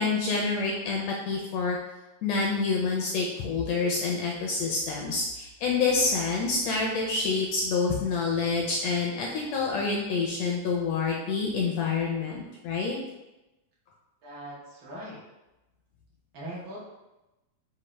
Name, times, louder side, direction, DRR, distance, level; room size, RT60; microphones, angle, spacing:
voice 1, 0.0-1.8 2.2-13.0, left 4 dB, 80° left, -2 dB, 1.5 m, -27 dB
voice 2, 14.2-15.2 16.3-16.8, right 1 dB, 70° right, -6 dB, 0.9 m, -40 dB
6.2 x 2.4 x 3.1 m, 1.0 s
omnidirectional pair, 3.4 m